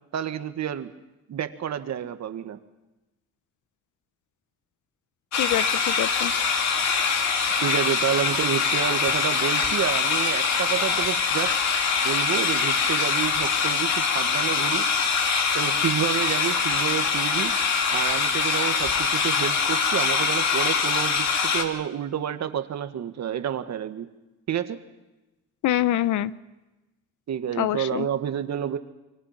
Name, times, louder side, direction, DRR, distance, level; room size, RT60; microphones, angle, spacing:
voice 1, 0.1-0.9 1.3-2.6 7.6-11.6 12.0-14.9 15.5-17.5 17.9-24.1 24.5-24.8 27.3-28.8, right 9 dB, 60° right, 9 dB, 1.8 m, -29 dB
voice 2, 5.3-6.3 25.6-26.3 27.6-28.1, left 13 dB, 80° left, 16 dB, 0.9 m, -25 dB
sound 1, 5.3-21.6, left 5 dB, 65° left, 2.8 m, -23 dB
28.0 x 24.5 x 5.9 m, 1.0 s
cardioid pair, 90°, 30 cm